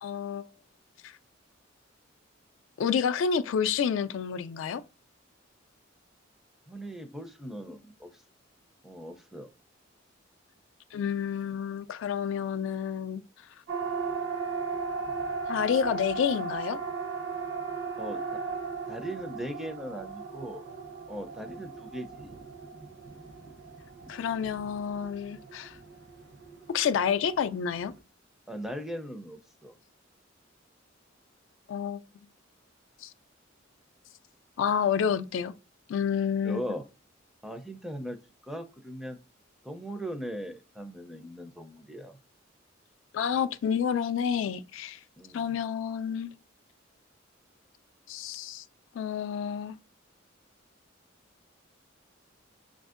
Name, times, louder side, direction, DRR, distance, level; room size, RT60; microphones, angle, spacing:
voice 1, 0.0-0.5 1.0-1.2 2.8-4.8 10.9-13.2 15.5-16.8 24.1-25.8 26.7-27.9 31.7-32.0 33.0-33.1 34.6-35.5 35.9-36.6 43.1-45.0 45.3-46.3 48.1-48.6 48.9-49.8, left 7 dB, 70° left, 0.3 m, -29 dB
voice 2, 6.7-8.2 8.8-9.5 18.0-18.2 18.9-20.6 21.1-22.3 28.5-29.7 36.4-36.8 37.4-38.2 38.4-39.2 39.6-42.2 45.2-45.6, equal, ahead, 0.4 m, -39 dB
Siren, 13.7-28.0, right 4 dB, 55° right, 0.7 m, -37 dB
6.1 x 2.5 x 2.4 m
head